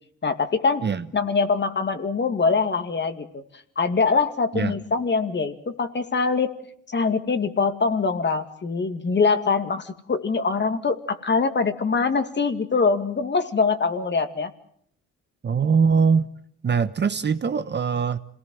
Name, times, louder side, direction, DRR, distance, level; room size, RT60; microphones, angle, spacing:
voice 1, 0.2-0.8 1.1-3.4 3.8-6.5 6.9-14.5, left 4 dB, 35° left, 8 dB, 2.3 m, -23 dB
voice 2, 15.4-16.3 16.6-18.2, right 5 dB, 35° right, 11 dB, 1.1 m, -22 dB
27.0 x 18.5 x 7.8 m, 0.67 s
cardioid pair, 90°, 30 cm